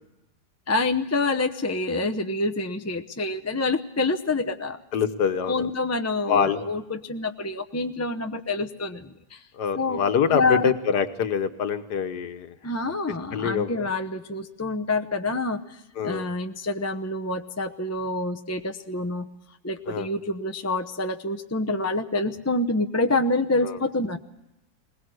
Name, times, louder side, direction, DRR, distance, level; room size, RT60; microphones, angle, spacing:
voice 1, 0.7-4.8 5.5-9.4 9.7-10.7 12.6-15.6 16.0-19.3 19.6-24.2, left 2 dB, 15° left, 7 dB, 0.6 m, -27 dB
voice 2, 4.9-5.6 6.3-6.6 9.6-12.5 13.3-13.9 16.0-16.3 19.9-20.1 23.6-23.8, left 7 dB, 85° left, 9 dB, 1.7 m, -25 dB
21.0 x 20.5 x 7.8 m, 0.89 s
omnidirectional pair, 1.7 m